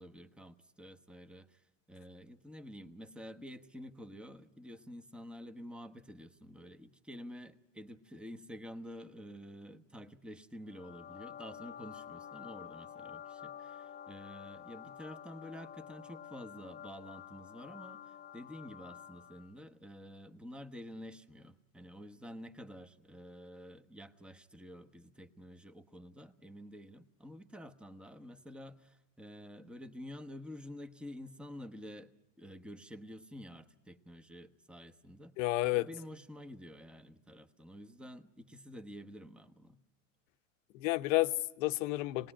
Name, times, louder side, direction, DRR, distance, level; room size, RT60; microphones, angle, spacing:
voice 1, 0.0-1.6 1.9-32.1 32.4-35.3 35.7-39.8, equal, 5° right, 1.0 m, -49 dB
sound 1, 10.7-19.5, left 9 dB, 25° left, 0.9 m, -49 dB
voice 2, 35.4-35.9 40.7-42.3, left 19 dB, 70° left, 1.0 m, -31 dB
26.5 x 19.5 x 10.0 m
supercardioid pair, 115°, 39 cm